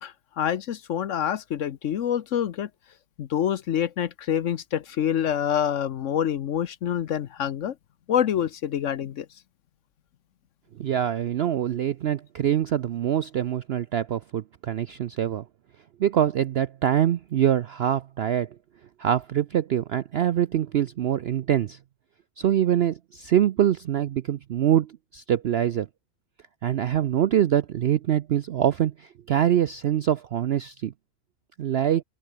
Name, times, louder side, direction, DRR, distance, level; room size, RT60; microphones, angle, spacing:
voice 1, 0.0-2.7 3.2-7.7 8.1-9.3, left 9 dB, 60° left, 1.0 m, -26 dB
voice 2, 10.8-15.4 16.0-18.5 19.0-21.8 22.4-25.9 26.6-30.9 31.6-32.0, right 10 dB, 65° right, 0.6 m, -24 dB
open air
omnidirectional pair, 1.6 m